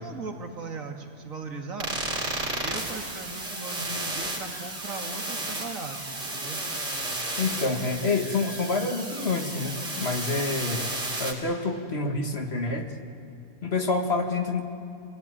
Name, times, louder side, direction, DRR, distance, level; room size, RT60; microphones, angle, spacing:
voice 1, 0.0-1.9 2.6-6.6, right 4 dB, 70° right, 3 dB, 2.4 m, -38 dB
sound 1, 1.8-11.3, right 2 dB, 45° right, 3.7 m, -33 dB
voice 2, 7.4-10.9 11.2-12.9 13.6-14.6, left 3 dB, 45° left, 4 dB, 1.9 m, -27 dB
26.0 x 18.0 x 9.9 m, 2.7 s
omnidirectional pair, 1.5 m